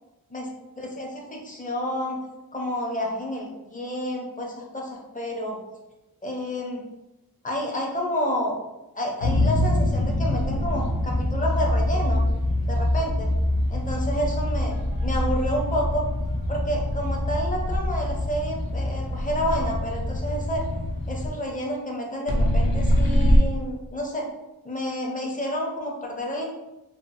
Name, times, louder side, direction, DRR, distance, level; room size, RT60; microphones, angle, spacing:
voice 1, 0.8-2.2 2.5-5.6 6.2-6.9 7.4-8.6 8.9-12.2 12.7-13.3 13.7-16.1 16.5-20.6 21.1-24.3 24.6-26.4, equal, 20° left, 0 dB, 0.6 m, -29 dB
sound 1, 9.2-21.3 22.3-23.4, left 1 dB, 70° left, 0.6 m, -24 dB
2.7 x 2.5 x 2.6 m, 0.97 s
wide cardioid pair, 110°, 36 cm